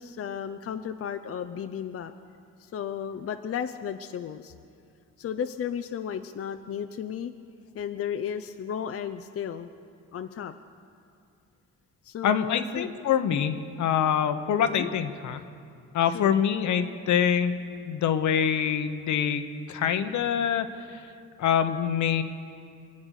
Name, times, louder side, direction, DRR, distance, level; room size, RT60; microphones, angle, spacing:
voice 1, 0.0-2.1 2.6-4.5 5.2-7.3 7.7-9.7 10.1-10.5 12.0-12.9 14.7-14.9 16.0-16.3, left 8 dB, 50° left, 8 dB, 0.7 m, -34 dB
voice 2, 12.2-15.4 15.9-17.6 17.8-21.0 21.4-22.2, left 8 dB, 70° left, 9 dB, 1.1 m, -25 dB
24.5 x 8.8 x 6.5 m, 2.4 s
cardioid pair, 90°, 30 cm